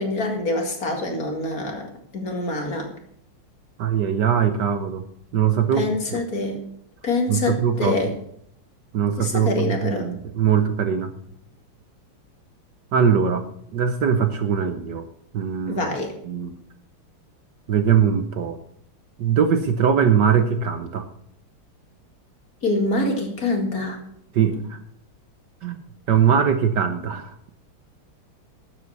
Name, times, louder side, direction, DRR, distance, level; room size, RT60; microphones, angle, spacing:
voice 1, 0.0-1.9 2.1-2.9 5.7-6.6 7.0-8.1 9.2-10.1 15.7-16.1 22.6-24.0, left 2 dB, 45° left, 3 dB, 2.7 m, -25 dB
voice 2, 3.8-5.0 5.3-6.2 7.3-8.0 8.9-11.1 12.9-13.4 13.7-15.0 15.3-15.9 16.2-16.5 17.7-18.6 19.2-21.1 24.3-24.8 25.6-25.8 26.1-27.3, right 7 dB, 65° right, 9 dB, 1.3 m, -21 dB
12.5 x 8.1 x 6.7 m, 0.69 s
omnidirectional pair, 2.3 m